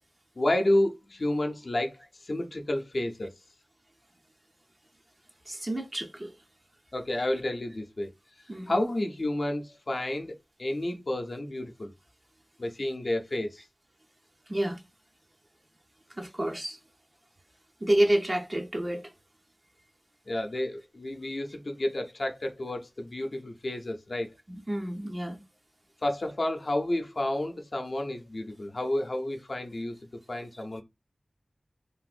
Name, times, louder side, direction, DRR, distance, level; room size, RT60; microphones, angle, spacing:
voice 1, 0.4-3.3 6.9-8.1 8.7-11.9 12.6-13.6 20.3-24.3 26.0-29.9 30.3-30.8, left 1 dB, 60° left, 0.6 m, -30 dB
voice 2, 5.5-6.3 8.5-8.9 14.5-14.8 16.2-16.8 17.8-19.0 24.5-25.4, right 1 dB, 30° right, 0.6 m, -29 dB
3.4 x 2.5 x 2.4 m
wide cardioid pair, 65°, 0 cm